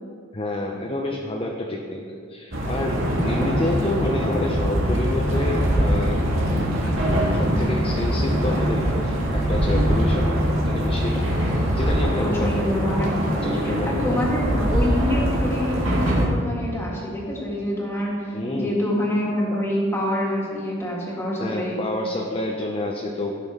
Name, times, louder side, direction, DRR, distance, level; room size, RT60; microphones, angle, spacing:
voice 1, 0.3-2.0 2.3-6.3 7.3-11.3 11.7-12.9 13.4-14.1 18.3-18.8 21.4-23.4, left 1 dB, 30° left, 0 dB, 0.7 m, -28 dB
sound 1, 2.5-16.2, equal, 80° right, 1.8 m, -22 dB
voice 2, 12.2-13.1 13.6-21.8, left 1 dB, 15° left, -4 dB, 2.0 m, -26 dB
15.5 x 5.9 x 3.6 m, 2.3 s
head